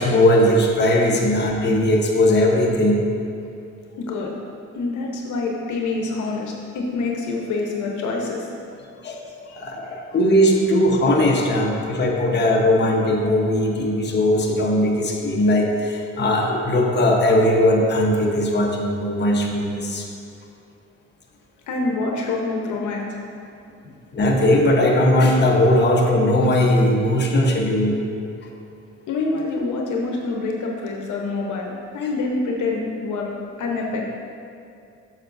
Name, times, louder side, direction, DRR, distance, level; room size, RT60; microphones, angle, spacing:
voice 1, 0.0-3.1 9.0-9.2 9.6-20.1 24.1-28.0, left 1 dB, 35° left, -1 dB, 1.1 m, -19 dB
voice 2, 4.0-4.3 4.7-8.5 9.5-10.0 21.7-23.2 23.8-23.9 29.1-33.3 33.6-34.1, left 3 dB, 75° left, 0 dB, 1.0 m, -26 dB
9.4 x 6.6 x 2.7 m, 2.6 s
cardioid pair, 90°, 30 cm